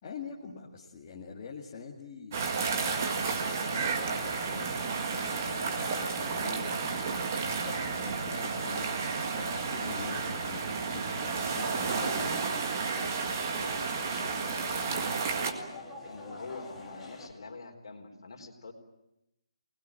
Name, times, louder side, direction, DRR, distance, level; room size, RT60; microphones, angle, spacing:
voice 1, 0.0-3.0 3.3-6.8 7.4-8.9 9.3-12.4, left 5 dB, 20° left, -3 dB, 1.9 m, -45 dB
sound 1, 2.3-15.5, right 5 dB, 25° right, 1.8 m, -32 dB
sound 2, 2.7-17.3, left 2 dB, 5° left, 2.5 m, -47 dB
voice 2, 12.0-12.4 12.9-15.6 16.0-18.7, left 3 dB, 50° left, 3 dB, 4.2 m, -46 dB
26.0 x 20.5 x 9.0 m, 0.88 s
hypercardioid pair, 175°, 3 cm